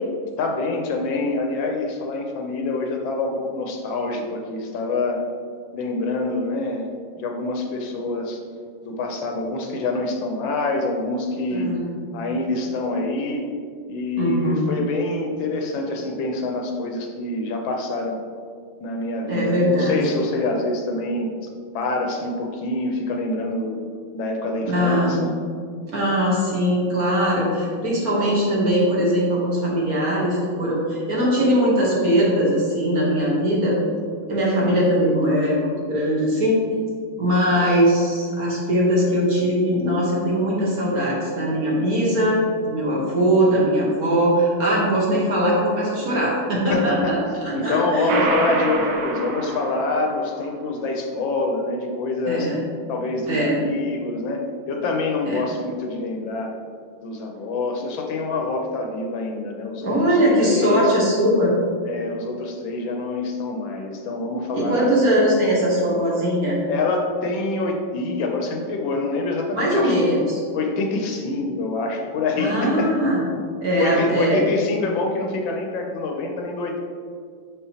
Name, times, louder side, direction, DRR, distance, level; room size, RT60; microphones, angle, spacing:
voice 1, 0.4-5.2 5.7-6.9 7.2-8.4 8.8-11.7 12.1-13.5 13.9-18.2 18.8-21.3 21.7-23.8 24.1-25.3 46.7-47.1 47.5-52.5 52.9-56.5 57.0-60.2 60.4-61.0 61.9-64.9 66.7-69.9 70.5-72.9 73.8-76.8, left 2 dB, 75° left, 2 dB, 1.4 m, -26 dB
voice 2, 11.5-11.9 14.2-14.6 19.3-20.0 24.6-25.2 25.9-33.8 34.3-36.6 37.2-42.4 42.6-48.2 52.3-52.6 53.3-53.6 55.3-55.4 59.8-61.5 64.5-66.6 69.5-70.4 72.4-73.2 73.6-74.4, equal, 50° right, -5 dB, 1.5 m, -20 dB
sound 1, 48.1-50.5, right 3 dB, 90° right, 1.7 m, -26 dB
6.1 x 5.6 x 2.8 m, 2.1 s
omnidirectional pair, 2.2 m